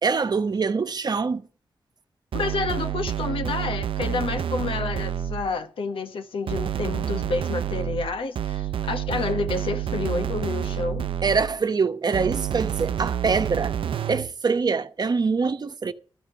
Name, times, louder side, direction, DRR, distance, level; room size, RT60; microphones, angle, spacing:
voice 1, 0.0-1.5 11.2-13.8 14.1-15.9, right 5 dB, 50° right, 1.0 m, -24 dB
voice 2, 2.3-11.1, left 4 dB, 85° left, 1.2 m, -29 dB
sound 1, 2.3-5.6 6.5-11.6 12.1-14.3, right 9 dB, 80° right, 0.5 m, -29 dB
13.5 x 5.2 x 8.8 m
cardioid pair, 80°, 9 cm